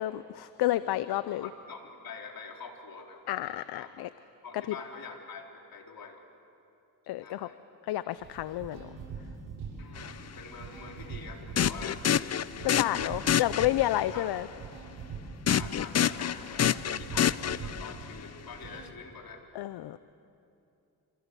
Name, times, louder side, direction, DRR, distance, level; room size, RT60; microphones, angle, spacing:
voice 1, 0.0-1.5 3.3-4.1 7.1-7.5 7.8-8.9 12.6-14.5 19.5-20.0, left 14 dB, 80° left, 14 dB, 0.7 m, -30 dB
voice 2, 1.4-3.2 3.7-3.9 4.4-6.2 7.2-7.6 9.8-12.2 12.5-13.2 14.1-14.3 15.5-19.4, left 5 dB, 65° left, 2 dB, 3.9 m, -45 dB
sound 1, 8.2-18.9, right 5 dB, 85° right, 7.7 m, -43 dB
sound 2, 10.0-10.1 11.6-14.0 15.5-18.1, left 9 dB, 40° left, 0.7 m, -28 dB
27.0 x 26.5 x 8.3 m, 2.7 s
cardioid pair, 80°, 38 cm